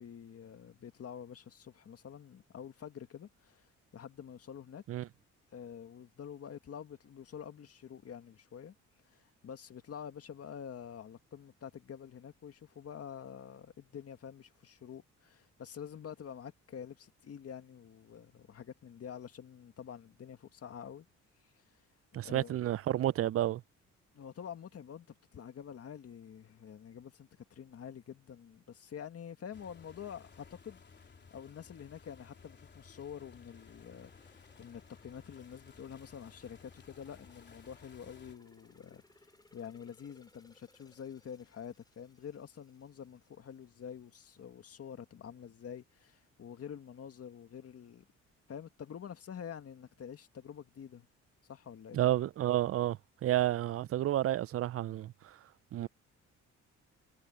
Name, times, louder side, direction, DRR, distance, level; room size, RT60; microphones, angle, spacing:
voice 1, 0.0-4.8 5.5-8.7 9.0-21.1 21.4-21.8 22.2-22.6 24.1-48.1 48.5-51.1 51.5-52.0, left 8 dB, 50° left, 2.1 m, -47 dB
voice 2, 22.1-23.6 51.9-55.4 55.7-55.9, right 13 dB, 50° right, 0.5 m, -31 dB
sound 1, 29.5-38.4, left 5 dB, 35° left, 3.5 m, -58 dB
sound 2, 33.5-44.2 44.6-44.7, left 2 dB, 15° left, 3.1 m, -68 dB
cardioid pair, 90°, 30 cm